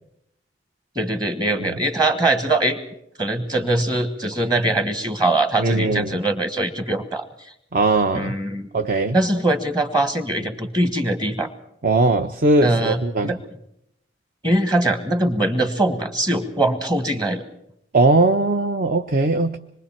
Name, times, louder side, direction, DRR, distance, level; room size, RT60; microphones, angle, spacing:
voice 1, 0.9-2.8 3.2-7.2 8.1-8.7 9.1-11.5 12.6-13.4 14.4-17.4, right 2 dB, 25° right, 8 dB, 1.5 m, -22 dB
voice 2, 5.6-6.1 7.7-8.3 8.7-9.2 11.8-13.3 17.9-19.6, right 2 dB, 50° right, 8 dB, 0.8 m, -19 dB
26.0 x 22.5 x 4.5 m, 0.76 s
head